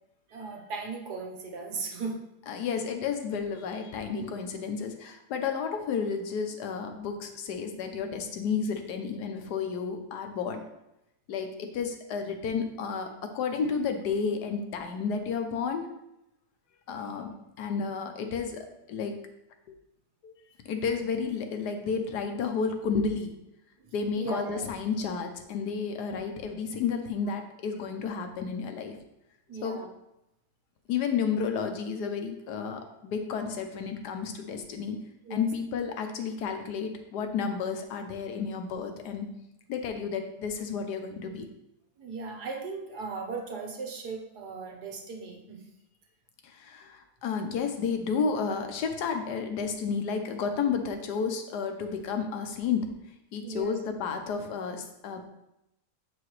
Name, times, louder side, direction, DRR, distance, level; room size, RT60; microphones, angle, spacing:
voice 1, 0.3-2.2 4.1-4.3 24.2-24.7 27.7-27.9 29.5-29.8 35.2-35.5 42.0-45.6 53.4-53.7, right 4 dB, 75° right, 2 dB, 1.6 m, -37 dB
voice 2, 2.5-10.6 11.3-13.1 13.3-15.8 16.9-19.2 20.2-20.4 20.7-23.3 23.9-29.0 29.6-29.8 30.9-35.0 35.3-39.3 39.7-41.5 46.4-52.9 53.3-55.2, left 6 dB, 80° left, 5 dB, 1.4 m, -31 dB
8.0 x 4.9 x 3.1 m, 0.86 s
omnidirectional pair, 1.7 m